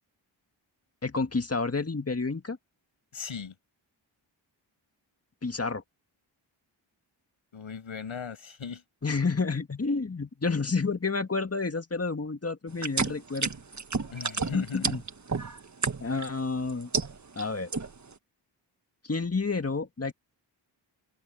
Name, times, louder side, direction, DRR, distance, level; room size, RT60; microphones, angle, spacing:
voice 1, 1.0-2.6 5.4-5.8 9.0-13.5 14.5-15.0 16.0-16.9 17.3-17.7 19.0-20.1, left 4 dB, 30° left, 1.9 m, -29 dB
voice 2, 3.1-3.5 7.5-8.8 14.1-14.9, left 6 dB, 90° left, 6.2 m, -38 dB
sound 1, 12.7-16.3 16.7-17.4 17.7-18.1, right 4 dB, 35° right, 1.4 m, -30 dB
open air
cardioid pair, 50°, 47 cm